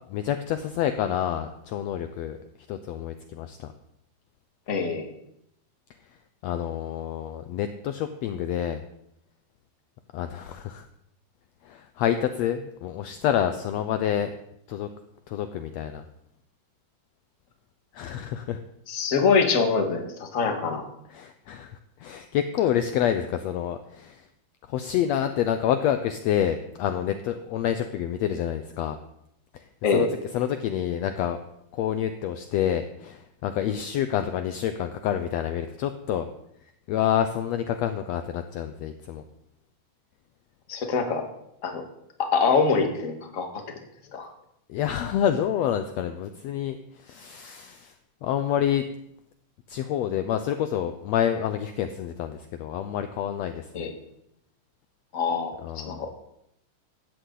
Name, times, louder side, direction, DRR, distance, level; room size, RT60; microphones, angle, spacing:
voice 1, 0.1-2.4 2.7-3.7 6.4-8.8 10.1-10.9 11.6-14.3 14.7-14.9 15.3-16.0 17.9-18.6 21.1-24.3 24.7-29.0 29.5-29.7 29.9-30.1 30.3-31.4 31.7-36.3 36.9-39.2 44.7-47.9 48.2-48.8 49.7-53.9 55.6-56.0, left 10 dB, 80° left, 9 dB, 1.5 m, -28 dB
voice 2, 4.7-5.1 18.9-20.9 29.8-30.1 40.7-41.2 41.6-41.8 42.2-43.6 44.1-44.3 53.7-53.9 55.1-56.1, left 5 dB, 35° left, 4 dB, 1.5 m, -24 dB
17.0 x 12.5 x 4.0 m, 0.76 s
omnidirectional pair, 3.8 m